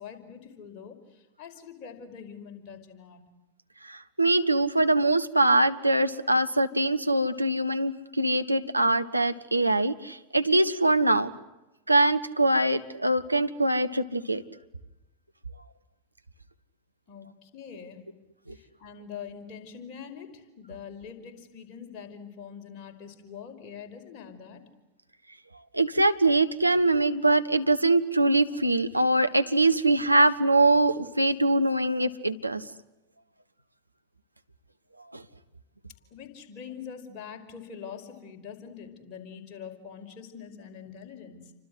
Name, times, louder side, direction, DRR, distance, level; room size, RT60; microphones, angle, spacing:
voice 1, 0.0-3.3 17.1-18.0 18.5-24.6 36.1-41.5, left 7 dB, 35° left, 4 dB, 5.4 m, -44 dB
voice 2, 3.9-11.3 11.9-14.4 25.7-32.6 35.1-35.2, right 2 dB, 85° right, 10 dB, 1.2 m, -23 dB
29.5 x 25.0 x 8.0 m, 0.99 s
figure-of-eight pair, 90°, 0 cm